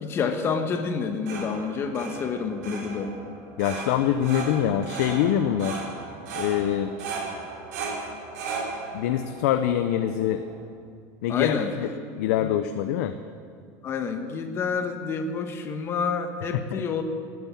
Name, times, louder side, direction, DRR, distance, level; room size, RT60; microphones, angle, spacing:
voice 1, 0.0-3.1 11.3-11.7 12.4-12.5 13.8-17.0, left 5 dB, 30° left, 6 dB, 1.4 m, -28 dB
sound 1, 0.9-10.6, right 4 dB, 90° right, 3.7 m, -36 dB
voice 2, 3.6-5.8 6.4-6.9 8.9-10.4 11.2-11.9 12.2-13.1 16.7-16.8, left 10 dB, 85° left, 8 dB, 0.7 m, -24 dB
19.5 x 9.7 x 7.3 m, 2.2 s
cardioid pair, 155°, 9 cm